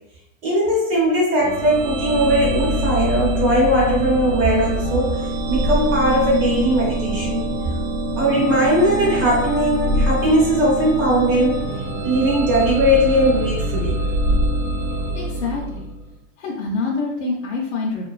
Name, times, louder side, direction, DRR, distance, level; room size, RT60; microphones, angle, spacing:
voice 1, 0.4-5.2 5.5-7.4 8.2-11.6 12.0-14.0, equal, 20° right, -5 dB, 0.5 m, -19 dB
sound 1, 1.4-16.1, right 1 dB, 90° right, 0.7 m, -24 dB
voice 2, 15.1-15.9 16.4-18.1, left 3 dB, 65° left, -3 dB, 0.6 m, -26 dB
2.5 x 2.3 x 2.3 m, 0.82 s
supercardioid pair, 170°, 41 cm